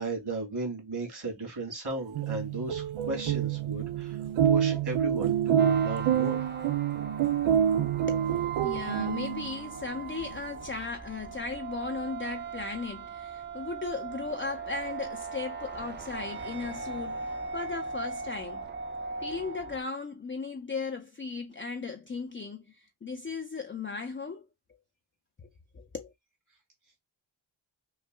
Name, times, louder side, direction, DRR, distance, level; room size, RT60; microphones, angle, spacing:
voice 1, 0.0-4.2 4.5-6.5, right 2 dB, 55° right, 2.4 m, -35 dB
sound 1, 2.0-9.6, right 9 dB, 85° right, 0.6 m, -27 dB
sound 2, 5.6-19.8, right 5 dB, 25° right, 0.6 m, -39 dB
voice 2, 8.1-18.7 19.2-24.5 25.7-26.1, left 4 dB, 25° left, 0.5 m, -37 dB
5.4 x 2.3 x 2.2 m
cardioid pair, 70°, 46 cm